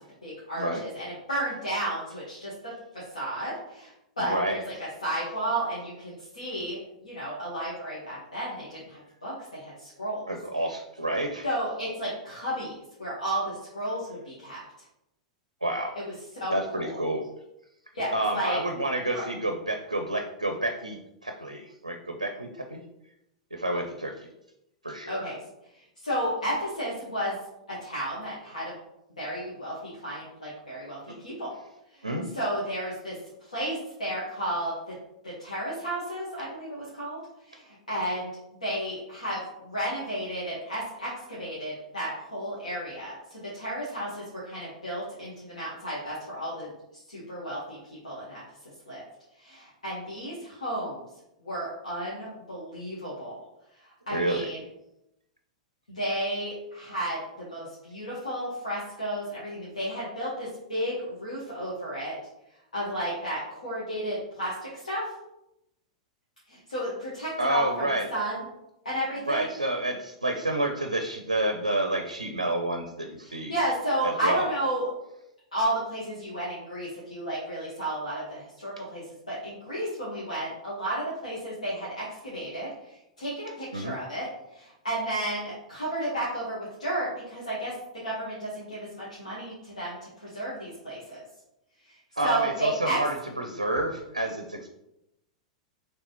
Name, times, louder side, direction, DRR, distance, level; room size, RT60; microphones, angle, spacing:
voice 1, 0.2-10.2 11.4-14.6 15.9-16.0 16.4-17.0 17.9-18.6 19.1-19.2 25.1-25.4 26.0-27.3 27.7-28.7 29.2-31.5 31.9-32.0 32.3-33.2 33.5-34.7 35.2-37.2 37.5-38.3 38.6-43.2 43.5-46.7 47.1-47.8 48.0-48.4 48.9-49.0 49.4-51.0 51.4-53.4 54.1-54.6 55.9-62.1 62.7-65.1 66.5-68.4 68.8-69.5 73.2-74.9 75.5-82.7 83.2-84.3 84.5-87.7 88.0-90.0 90.2-91.2 92.2-93.0, right 1 dB, 80° left, -8 dB, 1.3 m, -32 dB
voice 2, 10.3-11.5 15.6-16.0 16.5-17.2 18.1-22.8 23.5-24.3 24.8-25.3 32.0-32.3 54.1-54.5 67.4-68.1 69.2-73.5 74.0-74.5 83.7-84.0 92.2-94.7, right 1 dB, 90° right, 4 dB, 0.4 m, -29 dB
4.0 x 3.2 x 3.0 m, 0.85 s
figure-of-eight pair, 95°, 4 cm